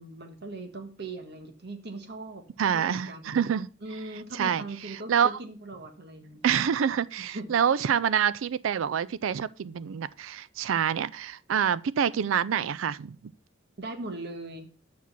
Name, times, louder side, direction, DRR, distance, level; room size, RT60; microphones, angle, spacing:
voice 1, 0.0-2.5 2.7-3.4 3.8-6.4 7.2-7.5 8.1-8.2 13.8-14.7, right 2 dB, 60° right, 1.5 m, -40 dB
voice 2, 2.6-3.7 4.3-4.6 5.1-5.3 6.4-13.2, right 8 dB, 90° right, 0.4 m, -26 dB
7.3 x 6.0 x 5.6 m
head